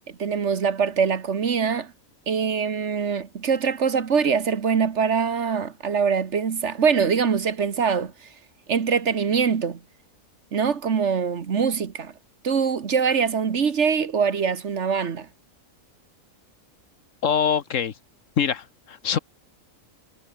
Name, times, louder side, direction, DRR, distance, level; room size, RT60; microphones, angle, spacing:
voice 1, 0.1-1.9 2.3-8.1 8.7-9.8 10.5-12.1 12.4-15.3, right 6 dB, 55° right, 1.5 m, -23 dB
voice 2, 17.2-17.9 18.4-19.2, left 8 dB, 65° left, 1.4 m, -24 dB
omnidirectional pair, 1.4 m